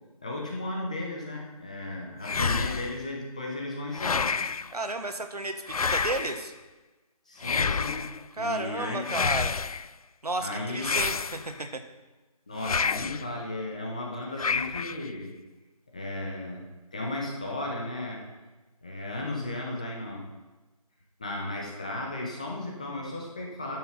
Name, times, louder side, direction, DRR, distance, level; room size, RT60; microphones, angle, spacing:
voice 1, 0.2-4.4 7.3-9.0 10.4-11.0 12.5-15.3 15.9-16.6 16.9-18.2 18.8-20.3 21.2-23.8, left 2 dB, 10° left, -1 dB, 0.7 m, -35 dB
sound 1, 2.2-3.0 3.9-4.7 5.7-6.5 7.4-8.2 9.0-9.9 10.8-11.7 12.6-13.3 14.4-15.1, left 5 dB, 65° left, 0.4 m, -29 dB
voice 2, 4.7-6.5 8.4-9.6 10.2-11.8, right 2 dB, 80° right, 7 dB, 1.5 m, -32 dB
10.0 x 7.5 x 5.8 m, 1.2 s
figure-of-eight pair, 165°, 20 cm